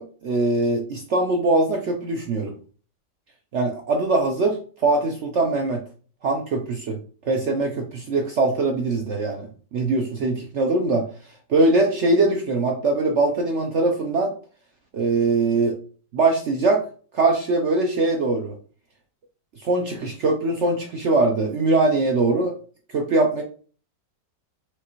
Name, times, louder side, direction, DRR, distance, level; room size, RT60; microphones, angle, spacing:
voice 1, 0.0-2.6 3.5-5.8 6.2-7.0 7.2-11.1 11.5-14.3 14.9-15.8 16.1-16.8 17.1-18.6 19.6-22.5 22.9-23.4, right 2 dB, 75° right, 3 dB, 0.6 m, -22 dB
5.0 x 3.2 x 3.0 m, 0.40 s
omnidirectional pair, 2.0 m